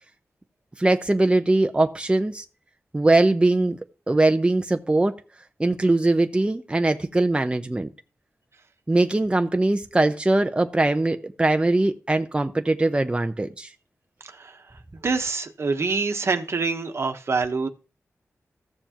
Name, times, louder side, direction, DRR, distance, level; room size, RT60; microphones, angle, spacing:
voice 1, 0.8-2.4 2.9-3.8 4.1-5.2 5.6-7.9 8.9-13.7, right 2 dB, 20° right, 0.7 m, -21 dB
voice 2, 14.2-14.6 15.0-17.7, right 4 dB, 55° right, 1.2 m, -25 dB
14.5 x 6.9 x 3.0 m
cardioid pair, 60°, 5 cm